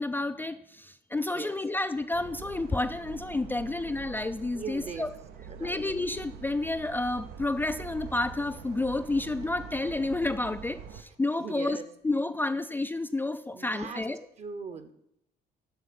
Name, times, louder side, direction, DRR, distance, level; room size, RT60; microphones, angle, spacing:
voice 1, 0.0-5.1 5.6-14.3, left 2 dB, 10° left, 9 dB, 0.3 m, -30 dB
sound 1, 2.1-11.0, right 7 dB, 85° right, 0.8 m, -45 dB
voice 2, 4.5-5.1 5.5-5.8 11.4-11.8 13.5-14.1 14.4-14.9, right 5 dB, 40° right, 10 dB, 0.9 m, -39 dB
7.8 x 5.5 x 6.7 m, 0.75 s
cardioid pair, 110°, 17 cm